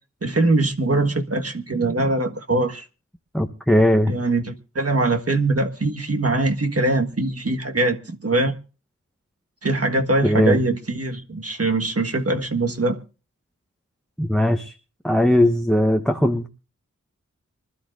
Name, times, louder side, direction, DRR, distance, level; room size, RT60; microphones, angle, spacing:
voice 1, 0.2-2.8 4.1-8.6 9.6-13.0, right 2 dB, 50° right, 1.5 m, -22 dB
voice 2, 3.3-4.1 10.2-10.6 14.2-14.7 15.0-16.5, left 1 dB, ahead, 0.9 m, -19 dB
25.0 x 12.5 x 2.5 m
wide cardioid pair, 50°, 31 cm